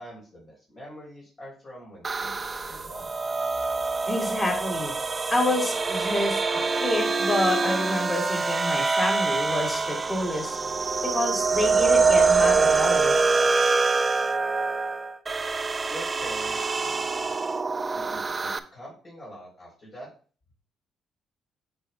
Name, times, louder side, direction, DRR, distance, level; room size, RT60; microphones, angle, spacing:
voice 1, 0.0-3.1 15.9-17.4 17.9-20.1, equal, 45° left, -4 dB, 3.6 m, -45 dB
sound 1, 2.0-18.6, right 4 dB, 30° right, 0.5 m, -25 dB
voice 2, 4.1-4.9 5.3-6.4 6.8-10.6 11.0-13.2, left 1 dB, 20° left, 1 dB, 2.7 m, -28 dB
8.8 x 5.9 x 2.3 m, 0.38 s
cardioid pair, 90°, 0 cm